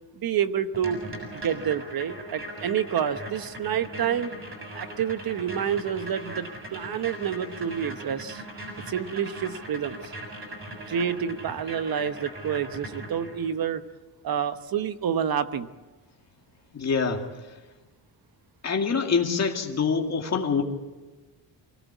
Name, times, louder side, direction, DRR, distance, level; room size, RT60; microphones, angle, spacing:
voice 1, 0.2-1.0 1.3-4.3 4.7-8.4 8.9-10.1 10.9-13.8 14.2-15.7, right 8 dB, 55° right, 11 dB, 1.1 m, -28 dB
sound 1, 0.7-13.5, right 1 dB, 30° right, 7.0 m, -39 dB
voice 2, 16.7-17.2 18.6-20.6, left 5 dB, 35° left, 2 dB, 2.2 m, -25 dB
24.5 x 17.5 x 8.2 m, 1.2 s
wide cardioid pair, 170°, 43 cm